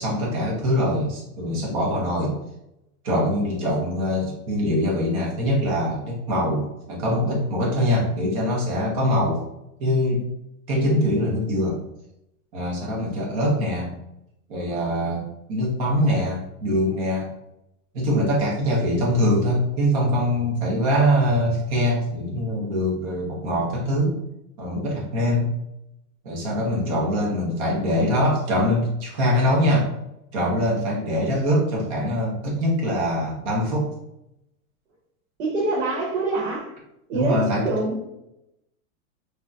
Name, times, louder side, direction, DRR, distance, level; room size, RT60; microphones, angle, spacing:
voice 1, 0.0-2.3 3.0-9.4 9.8-10.2 10.7-11.8 12.5-13.9 14.5-17.3 17.9-24.2 24.6-25.5 26.2-29.9 30.3-33.9 37.1-37.7, equal, 25° right, -3 dB, 0.5 m, -23 dB
voice 2, 35.4-36.7 37.1-37.4 37.6-38.1, right 3 dB, 60° right, -4 dB, 0.9 m, -25 dB
3.8 x 2.1 x 2.3 m, 0.85 s
supercardioid pair, 160°, 45 cm